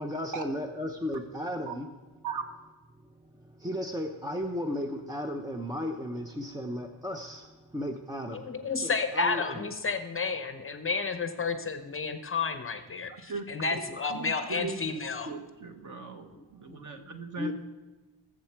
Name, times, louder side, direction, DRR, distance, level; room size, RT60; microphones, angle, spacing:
voice 1, 0.0-1.9 3.1-9.7 17.4-17.5, left 1 dB, 10° right, 0.5 m, -35 dB
voice 2, 8.3-15.3 16.3-16.8, left 4 dB, 25° left, 0.7 m, -31 dB
voice 3, 14.1-15.0 15.3-17.5, right 5 dB, 40° right, 1.4 m, -38 dB
20.0 x 7.4 x 4.5 m
cardioid pair, 140°, 48 cm